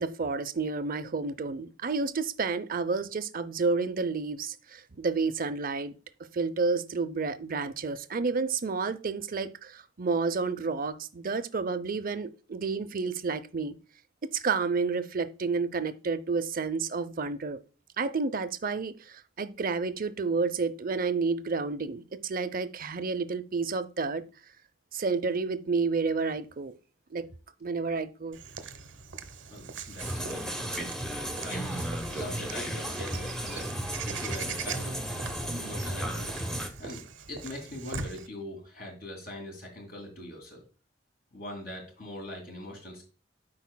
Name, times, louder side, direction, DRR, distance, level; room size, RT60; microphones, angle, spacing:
voice 1, 0.0-5.9 6.3-13.7 14.2-17.6 18.0-24.2 24.9-26.7 27.1-27.3 27.6-28.4, right 4 dB, 45° right, 0.6 m, -30 dB
Walk footsteps / Bird vocalization bird call bird song, 28.3-38.3, right 6 dB, 75° right, 0.9 m, -42 dB
voice 2, 29.5-30.7 31.2-33.7 34.0-35.0 35.5-36.3 36.8-37.0 37.3-40.6 41.3-43.0, left 1 dB, 50° left, 2.4 m, -42 dB
sound 1, 30.0-36.7, equal, 5° left, 0.9 m, -34 dB
12.5 x 5.0 x 2.2 m
head